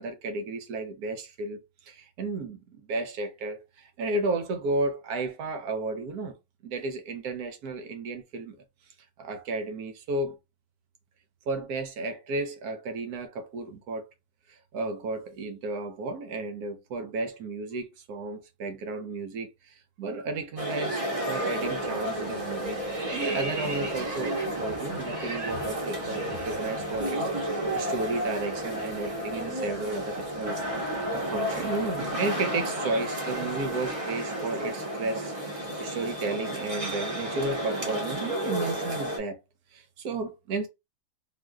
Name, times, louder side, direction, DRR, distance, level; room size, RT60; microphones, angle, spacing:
voice 1, 0.0-1.6 1.9-6.4 6.6-8.6 9.2-10.4 11.5-14.0 14.5-30.6 31.1-39.4 39.7-40.7, right 3 dB, 65° right, 1.0 m, -33 dB
sound 1, 20.6-39.2, right 1 dB, 25° right, 0.8 m, -32 dB
sound 2, 21.6-21.9 22.2-27.1 27.4-27.6 27.9-31.9, right 1 dB, 90° right, 2.2 m, -41 dB
3.8 x 2.5 x 2.3 m
omnidirectional pair, 2.0 m